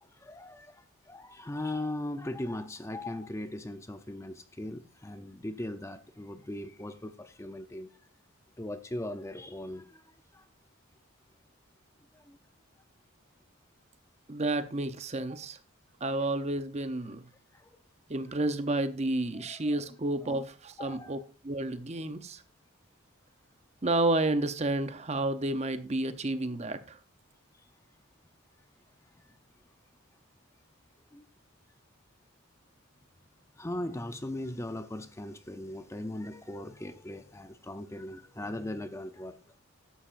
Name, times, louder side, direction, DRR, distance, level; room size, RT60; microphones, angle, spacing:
voice 1, 0.0-7.9 8.6-10.0 10.3-10.4 12.1-12.4 17.5-17.7 19.3-19.9 20.2-20.4 20.8-21.2 29.3-29.4 31.1-31.2 33.6-39.4, left 1 dB, 15° left, 0.5 m, -39 dB
voice 2, 14.3-15.6 16.0-17.2 18.1-21.2 21.4-22.4 23.8-27.0, right 2 dB, 30° right, 0.7 m, -30 dB
13.5 x 11.0 x 2.5 m
head